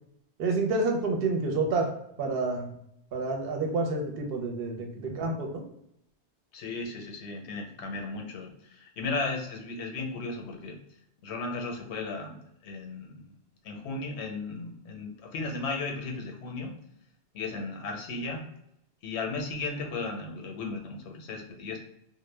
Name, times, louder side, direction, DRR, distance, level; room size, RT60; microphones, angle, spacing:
voice 1, 0.4-1.9 2.2-2.7 3.1-5.6, right 3 dB, 65° right, 3 dB, 0.7 m, -28 dB
voice 2, 6.5-10.8 11.2-12.4 12.6-13.3 13.6-16.7 17.3-18.4 19.0-21.8, left 3 dB, 80° left, 2 dB, 0.9 m, -35 dB
2.1 x 2.0 x 3.2 m, 0.77 s
omnidirectional pair, 1.1 m